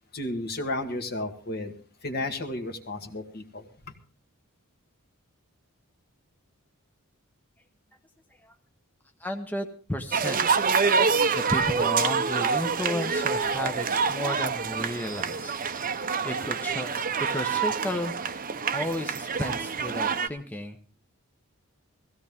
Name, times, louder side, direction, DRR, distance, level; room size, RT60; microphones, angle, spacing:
voice 1, 0.1-1.7 2.0-3.6, left 2 dB, 45° left, 6 dB, 1.8 m, -32 dB
voice 2, 9.2-11.0 11.3-15.9 16.2-16.9 17.2-18.1 18.7-20.8, left 1 dB, 10° left, 4 dB, 0.9 m, -33 dB
sound 1, 10.1-20.3, right 5 dB, 40° right, 0.8 m, -26 dB
17.0 x 16.0 x 3.6 m, 0.38 s
head